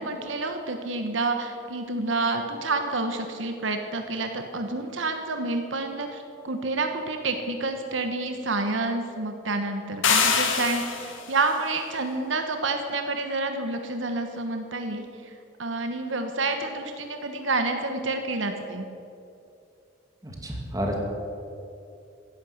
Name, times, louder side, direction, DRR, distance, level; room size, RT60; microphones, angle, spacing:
voice 1, 0.0-15.3 15.6-18.9, right 3 dB, 70° right, 6 dB, 1.3 m, -29 dB
China Trash Cymbal, 10.0-11.3, left 6 dB, 80° left, 2.0 m, -23 dB
voice 2, 20.2-21.0, equal, 20° right, 1 dB, 2.6 m, -30 dB
16.0 x 11.0 x 7.9 m, 2.6 s
head